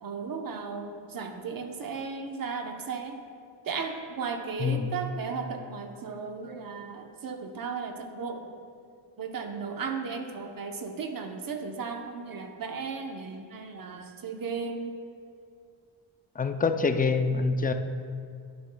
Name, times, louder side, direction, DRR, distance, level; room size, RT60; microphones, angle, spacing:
voice 1, 0.0-3.2 3.6-8.4 9.2-15.0, right 5 dB, 45° right, 4 dB, 0.9 m, -35 dB
voice 2, 16.4-17.7, left 4 dB, 20° left, 8 dB, 0.3 m, -25 dB
11.0 x 9.6 x 2.3 m, 2.3 s
cardioid pair, 105°, 48 cm